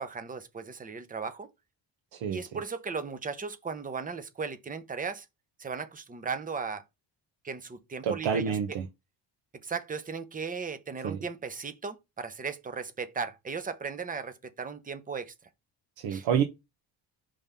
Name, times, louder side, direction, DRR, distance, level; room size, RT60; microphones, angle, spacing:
voice 1, 0.0-1.5 2.3-5.3 5.6-6.8 7.4-8.5 9.6-15.3 16.1-16.2, right 5 dB, 20° right, 0.7 m, -36 dB
voice 2, 2.1-2.6 8.0-8.9 11.0-11.2 16.0-16.4, right 7 dB, 80° right, 1.1 m, -28 dB
5.4 x 3.5 x 5.4 m
cardioid pair, 155°, 45 cm